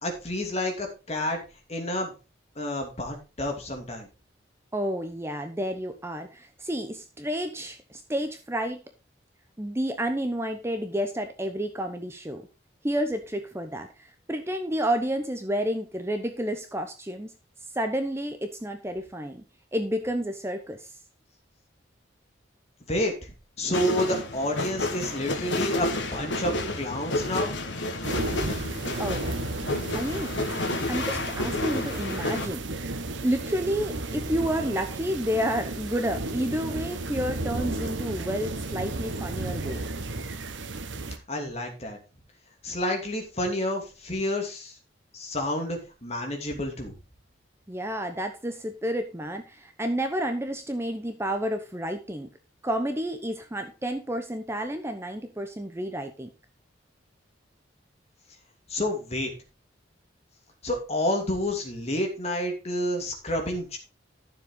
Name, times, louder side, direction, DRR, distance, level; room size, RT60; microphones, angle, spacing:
voice 1, 0.0-1.4 1.7-2.1 2.6-4.1 22.9-23.3 23.6-27.5 41.3-42.0 42.6-44.7 45.1-46.9 58.7-59.3 60.6-63.8, left 1 dB, 35° left, 2 dB, 2.8 m, -29 dB
voice 2, 4.7-8.8 9.6-12.5 12.8-13.9 14.3-17.3 17.7-19.4 19.7-20.9 29.0-29.2 29.9-30.3 30.9-32.7 33.2-39.8 47.7-52.3 52.6-56.3, equal, 15° right, 7 dB, 0.8 m, -30 dB
sound 1, 23.7-32.5, left 2 dB, 70° left, 1.5 m, -30 dB
sound 2, 28.0-41.2, right 2 dB, 80° right, 1.1 m, -33 dB
12.5 x 7.1 x 3.9 m, 0.30 s
head